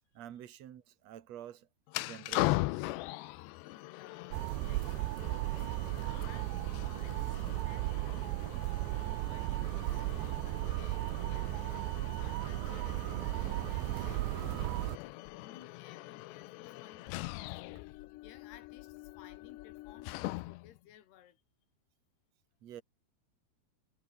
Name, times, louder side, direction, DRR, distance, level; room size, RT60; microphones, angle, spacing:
voice 1, 0.1-1.7 2.0-2.9 22.6-22.8, right 10 dB, 50° right, 2.3 m, -48 dB
sound 1, 1.9-20.8, left 20 dB, 90° left, 3.0 m, -41 dB
voice 2, 3.6-21.4, left 11 dB, 70° left, 4.3 m, -59 dB
sound 2, 4.3-15.0, right 20 dB, 90° right, 3.0 m, -35 dB
omnidirectional pair, 4.9 m